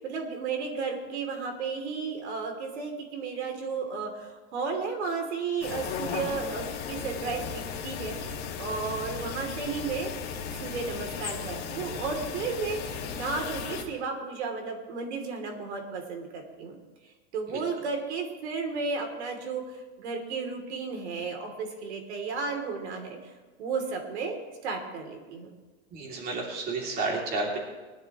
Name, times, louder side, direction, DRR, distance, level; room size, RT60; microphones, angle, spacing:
voice 1, 0.0-10.1 10.5-16.7 17.3-23.3 23.6-25.5, right 4 dB, 70° right, 4 dB, 2.9 m, -33 dB
sound 1, 5.6-13.8, left 6 dB, 30° left, 1.8 m, -36 dB
voice 2, 25.9-27.6, right 3 dB, 25° right, -1 dB, 2.7 m, -31 dB
20.5 x 12.0 x 3.0 m, 1.3 s
supercardioid pair, 155°, 35 cm